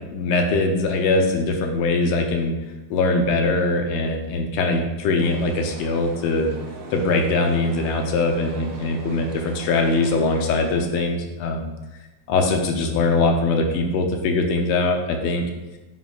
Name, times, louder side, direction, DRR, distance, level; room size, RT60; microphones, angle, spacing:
voice 1, 0.1-2.5 2.9-6.5 6.9-11.7 12.3-15.4, left 3 dB, 90° left, 4 dB, 1.7 m, -22 dB
sound 1, 5.2-10.8, right 3 dB, 70° right, 1.6 m, -40 dB
9.0 x 5.3 x 2.4 m, 1.1 s
omnidirectional pair, 2.4 m